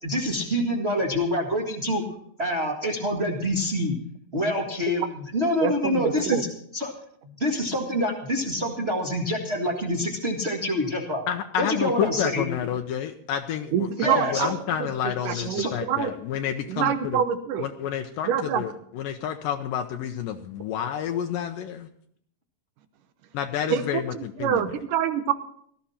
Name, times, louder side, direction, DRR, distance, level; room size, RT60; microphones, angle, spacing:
voice 1, 0.0-2.0 2.4-3.9 4.3-6.5 6.7-6.9 7.2-11.2 11.6-12.5 14.0-14.5 15.3-15.8, left 1 dB, 30° right, -1 dB, 1.2 m, -26 dB
voice 2, 5.6-6.4 13.7-14.5 14.8-14.9 15.2-16.1 16.7-17.7 18.2-18.6 23.7-25.3, right 8 dB, 70° right, 10 dB, 2.4 m, -26 dB
voice 3, 11.3-13.9 14.2-17.2 17.6-21.9 23.3-24.8, left 9 dB, 75° left, 5 dB, 2.3 m, -29 dB
19.0 x 13.0 x 4.3 m, 0.67 s
omnidirectional pair, 4.1 m